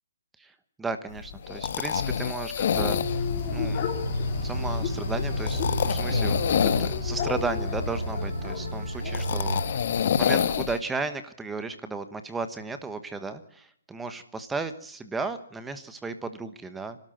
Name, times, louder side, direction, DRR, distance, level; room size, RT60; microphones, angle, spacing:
voice 1, 0.4-3.8 4.4-6.4 6.6-9.8 10.2-17.0, right 4 dB, 5° right, 10 dB, 1.2 m, -35 dB
sound 1, 1.1-10.8, left 8 dB, 50° left, 1.5 m, -29 dB
sound 2, 2.7-10.3, left 4 dB, 30° left, 4.2 m, -31 dB
sound 3, 3.9-9.6, right 4 dB, 65° right, 6.0 m, -35 dB
26.5 x 13.0 x 9.2 m, 0.66 s
hypercardioid pair, 165°, 0 cm